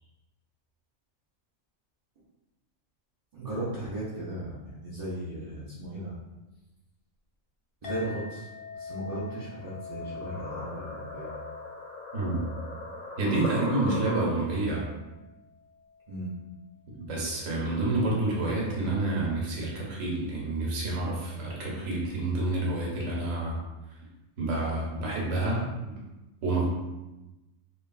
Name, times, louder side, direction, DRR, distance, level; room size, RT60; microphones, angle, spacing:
voice 1, 3.3-6.1 7.8-8.5 8.7-11.4 16.1-16.3, right 1 dB, 45° right, -10 dB, 0.5 m, -36 dB
Chink clink, 7.8-16.5, left 4 dB, 45° left, 0.4 m, -45 dB
sound 1, 9.6-14.7, left 2 dB, 85° left, 1.0 m, -38 dB
voice 2, 12.1-12.4 13.2-14.9 17.0-23.6 24.4-25.9 26.4-26.6, right 2 dB, 90° right, -3 dB, 1.2 m, -28 dB
3.1 x 2.3 x 2.3 m, 1.0 s
omnidirectional pair, 1.3 m